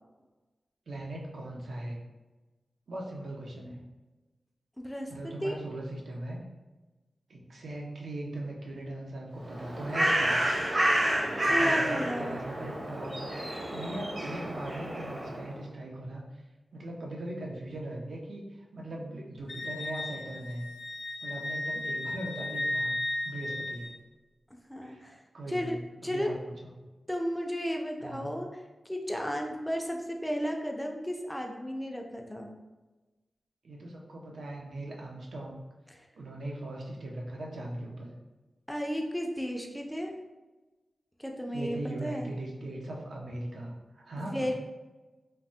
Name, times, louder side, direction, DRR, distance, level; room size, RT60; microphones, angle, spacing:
voice 1, 0.9-2.0 2.9-3.8 5.1-6.4 7.3-10.3 11.4-16.2 16.7-18.4 18.7-20.7 21.2-22.9 23.2-23.9 24.8-25.1 25.3-26.7 28.0-28.3 33.6-35.6 36.1-38.1 41.5-44.5, right 1 dB, 80° right, -1 dB, 0.5 m, -39 dB
voice 2, 4.8-5.5 11.1-12.4 24.7-25.2 25.5-25.8 26.0-26.3 27.1-32.5 35.9-36.0 38.7-40.1 41.2-42.3 44.2-44.5, equal, 5° left, 2 dB, 0.3 m, -34 dB
Bird, 9.4-15.5, right 1 dB, 35° right, 0.6 m, -29 dB
Wind instrument woodwind instrument, 19.5-24.0, left 2 dB, 90° left, 0.4 m, -35 dB
3.2 x 2.0 x 2.7 m, 1.2 s
wide cardioid pair, 95°, 0 cm